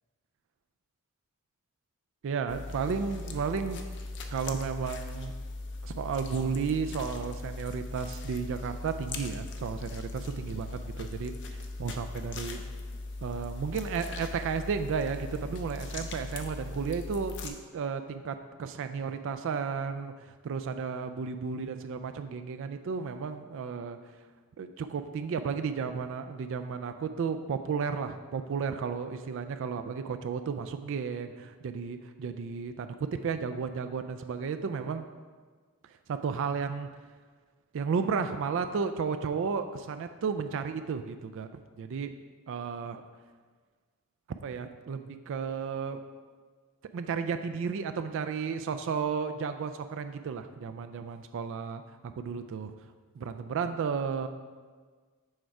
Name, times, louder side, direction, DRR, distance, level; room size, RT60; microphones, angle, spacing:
voice 1, 2.2-3.8 4.3-5.3 5.8-12.6 13.2-24.0 24.6-35.1 36.1-36.9 37.7-41.5 41.8-42.1 42.5-43.0 44.4-46.0 46.9-52.7 53.2-54.3, right 5 dB, 60° right, 9 dB, 0.3 m, -33 dB
sound 1, 2.5-17.5, left 2 dB, 55° left, 0.6 m, -39 dB
6.4 x 4.5 x 4.8 m, 1.5 s
head